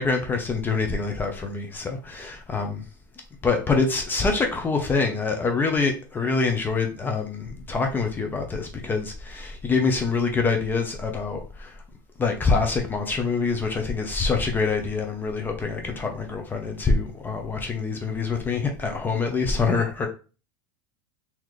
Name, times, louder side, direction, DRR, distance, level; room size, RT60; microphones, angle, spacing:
voice 1, 0.0-2.8 3.4-11.7 12.2-20.1, left 4 dB, 20° left, 3 dB, 0.7 m, -25 dB
4.0 x 2.9 x 3.1 m, 0.34 s
supercardioid pair, 120°, 11 cm